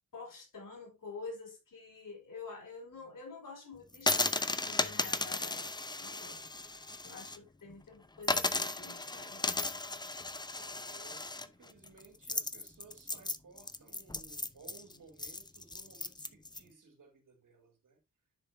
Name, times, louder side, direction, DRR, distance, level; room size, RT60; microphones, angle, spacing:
voice 1, 0.1-5.7 6.0-6.5 7.0-9.6, left 4 dB, 75° left, 4.2 m, -48 dB
sound 1, 3.9-7.4 7.7-7.8 8.2-16.6, left 2 dB, 15° left, 0.6 m, -35 dB
voice 2, 10.5-18.0, right 4 dB, 75° right, 3.2 m, -58 dB
10.5 x 5.4 x 2.7 m
wide cardioid pair, 110°, 32 cm